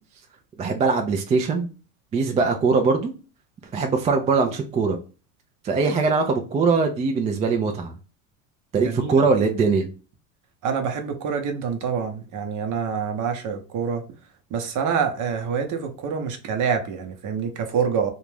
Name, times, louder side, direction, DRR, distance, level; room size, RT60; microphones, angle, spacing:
voice 1, 0.6-1.7 2.1-3.1 3.7-5.0 5.6-7.9 8.7-9.9, right 4 dB, 20° right, 0.3 m, -21 dB
voice 2, 8.7-9.2 10.6-14.1 14.5-18.1, right 6 dB, 45° right, 0.8 m, -26 dB
2.4 x 2.2 x 3.2 m
supercardioid pair, 100°, 41 cm